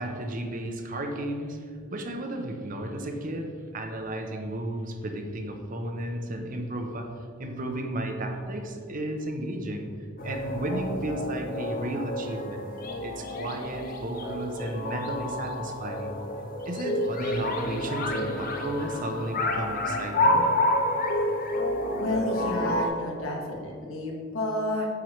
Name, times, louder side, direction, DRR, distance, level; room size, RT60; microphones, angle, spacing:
voice 1, 0.0-7.1 7.4-9.9 10.2-12.7 13.0-16.2 16.7-20.5, right 1 dB, 40° right, 4 dB, 0.7 m, -33 dB
sound 1, 10.2-22.9, left 1 dB, 45° left, 0.7 m, -29 dB
voice 2, 22.0-24.9, left 1 dB, 80° left, -1 dB, 1.3 m, -31 dB
8.6 x 4.7 x 3.1 m, 2.2 s
head